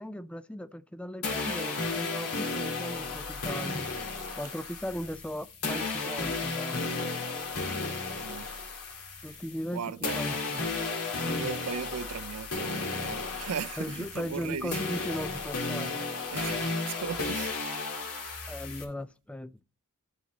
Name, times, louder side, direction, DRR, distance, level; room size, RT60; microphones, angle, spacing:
voice 1, 0.0-3.9 4.4-6.9 9.2-10.7 11.2-11.5 13.8-16.0 18.5-19.6, equal, 5° left, 0.3 m, -38 dB
sound 1, 1.2-9.7 10.0-18.8, left 3 dB, 75° left, 1.9 m, -34 dB
voice 2, 8.1-8.5 9.3-9.4 9.7-10.2 11.3-14.8 16.3-17.5, right 7 dB, 80° right, 0.5 m, -37 dB
12.0 x 4.0 x 4.0 m
head